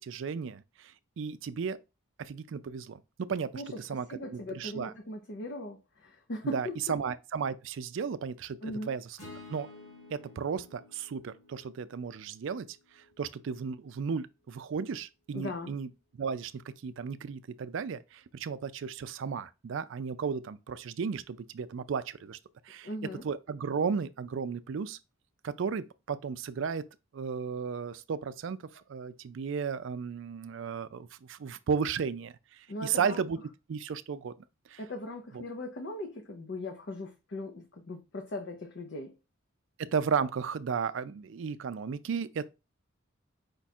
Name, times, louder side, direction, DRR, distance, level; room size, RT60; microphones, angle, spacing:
voice 1, 0.0-1.8 2.2-3.0 3.3-4.9 6.5-9.2 9.5-9.7 10.1-12.7 13.2-15.9 16.2-22.4 22.7-22.9 23.2-25.0 25.4-26.8 27.1-28.6 28.9-33.4 33.7-34.3 34.7-34.8 35.3-35.4 39.8-42.5, right 6 dB, 60° right, 0.4 m, -34 dB
voice 2, 4.1-6.9 8.6-8.9 15.3-15.7 22.8-23.2 32.7-33.2 34.8-39.1, left 1 dB, 55° left, 0.6 m, -39 dB
sound 1, 9.2-13.5, left 2 dB, 85° left, 2.5 m, -52 dB
5.2 x 2.4 x 4.1 m
head